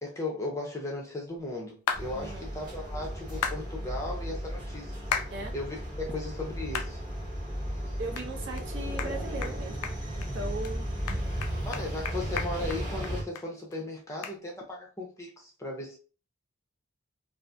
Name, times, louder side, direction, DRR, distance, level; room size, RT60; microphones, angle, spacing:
voice 1, 0.0-5.0 5.5-7.0 11.6-16.0, left 2 dB, 15° left, 0.5 m, -36 dB
sound 1, 1.9-2.1 3.4-3.6 5.1-5.3 5.8-5.9 6.7-6.9 7.4-7.5 8.2-8.3 8.6-8.7 9.0-9.1 9.4-9.6 9.8-10.3 10.6-10.7 11.1-13.5 13.7-13.8 14.2-14.4, left 7 dB, 85° left, 0.4 m, -33 dB
sound 2, 1.9-13.2, equal, 20° right, 0.9 m, -35 dB
voice 2, 2.1-2.5 5.3-5.5 8.0-9.9 10.2-10.9, right 2 dB, 50° right, 0.6 m, -38 dB
2.6 x 2.4 x 2.2 m
head